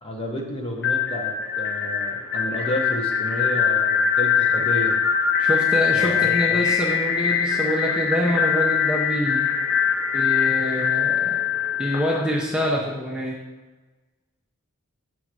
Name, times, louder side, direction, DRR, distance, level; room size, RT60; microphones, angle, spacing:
voice 1, 0.0-5.0 5.9-6.7, left 1 dB, 25° left, 0 dB, 0.9 m, -31 dB
sound 1, 0.8-12.6, left 7 dB, 50° left, 1.1 m, -22 dB
voice 2, 5.4-9.4 10.1-11.4 11.8-13.4, equal, 5° right, -3 dB, 0.6 m, -26 dB
6.2 x 3.9 x 6.1 m, 1.2 s
head